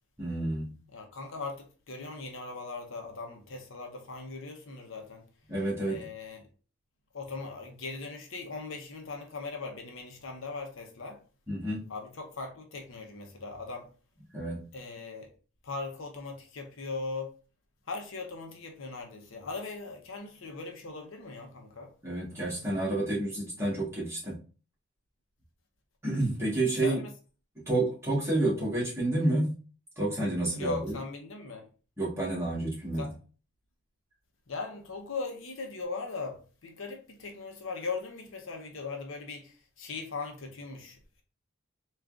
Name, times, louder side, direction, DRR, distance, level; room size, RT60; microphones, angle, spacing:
voice 1, 0.2-0.7 5.5-6.0 11.5-11.8 14.3-14.6 22.0-24.4 26.0-27.0 27.7-29.6 30.0-30.9 32.0-33.1, right 2 dB, 10° right, 1.4 m, -29 dB
voice 2, 0.9-5.3 5.8-6.5 7.1-11.2 11.9-13.9 14.7-15.3 15.6-17.3 17.9-21.9 26.8-27.1 30.5-31.7 33.0-33.1 34.5-41.2, left 4 dB, 65° left, 0.7 m, -39 dB
3.7 x 2.4 x 3.5 m
head